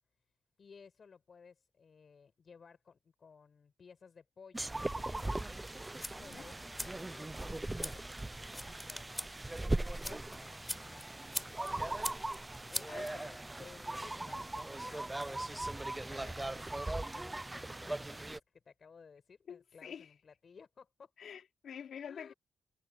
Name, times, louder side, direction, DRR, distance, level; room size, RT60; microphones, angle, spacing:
voice 1, 0.6-5.5 6.0-8.0 8.5-12.1 12.7-21.1 22.1-22.3, left 5 dB, 40° left, 6.2 m, -58 dB
sound 1, 4.5-18.4, right 2 dB, 10° right, 0.3 m, -39 dB
sound 2, 5.6-13.6, left 1 dB, 5° left, 4.0 m, -45 dB
voice 2, 12.9-13.4 19.5-20.1 21.2-22.3, left 8 dB, 70° left, 2.8 m, -47 dB
wide cardioid pair, 150°, 0 cm